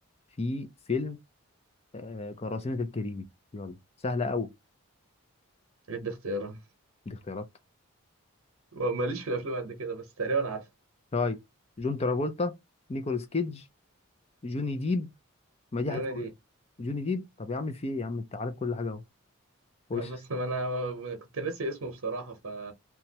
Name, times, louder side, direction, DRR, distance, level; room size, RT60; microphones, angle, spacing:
voice 1, 0.4-1.2 1.9-3.8 4.0-4.5 7.1-7.5 11.1-11.4 11.8-12.5 12.9-13.6 14.4-15.1 15.7-16.3 16.8-19.0 19.9-20.1, left 3 dB, 30° left, 0.4 m, -31 dB
voice 2, 5.9-6.6 8.7-10.6 15.9-16.3 19.9-22.7, right 2 dB, 75° right, 0.8 m, -33 dB
3.0 x 2.3 x 2.8 m
head